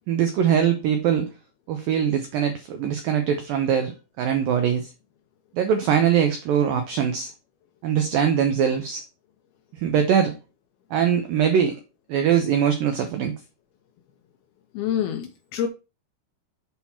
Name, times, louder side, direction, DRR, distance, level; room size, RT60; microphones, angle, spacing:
voice 1, 0.1-1.3 1.7-4.9 5.5-7.3 7.8-9.0 9.8-10.3 10.9-11.8 12.1-13.3, right 8 dB, 85° right, 2.0 m, -22 dB
voice 2, 14.7-15.7, left 9 dB, 75° left, 2.3 m, -26 dB
7.7 x 4.4 x 5.7 m
omnidirectional pair, 5.3 m